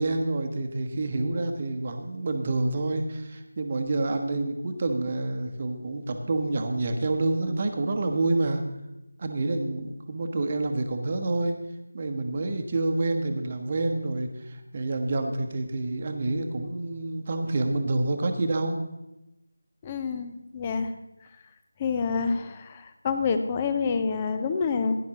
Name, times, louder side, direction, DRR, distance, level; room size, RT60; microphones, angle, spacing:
voice 1, 0.0-8.7 9.2-11.6 11.9-18.8, right 2 dB, 30° right, 5 dB, 1.0 m, -28 dB
voice 2, 19.8-20.9 21.8-25.0, left 5 dB, 15° left, 8 dB, 0.6 m, -27 dB
16.0 x 10.5 x 3.0 m, 0.95 s
figure-of-eight pair, 165°, 0 cm